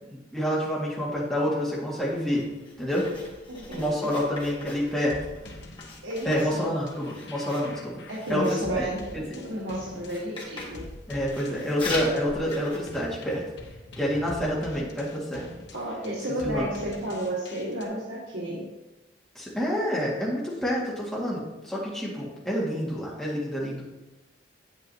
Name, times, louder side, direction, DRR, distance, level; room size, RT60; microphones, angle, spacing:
voice 1, 0.1-2.5 2.8-3.1 3.7-5.2 6.2-8.0 8.3-8.8 9.1-9.2 11.1-13.4 14.0-15.5 16.4-16.7 19.4-24.1, equal, 5° left, -6 dB, 1.9 m, -28 dB
Writing, 1.9-13.6, left 2 dB, 25° left, 1.7 m, -42 dB
voice 2, 3.5-4.1 6.0-6.7 8.1-10.9 15.7-18.6, right 1 dB, 85° right, -5 dB, 1.5 m, -32 dB
sound 1, 4.9-17.8, left 1 dB, 65° left, 1.0 m, -45 dB
8.3 x 8.2 x 2.8 m, 1.1 s
head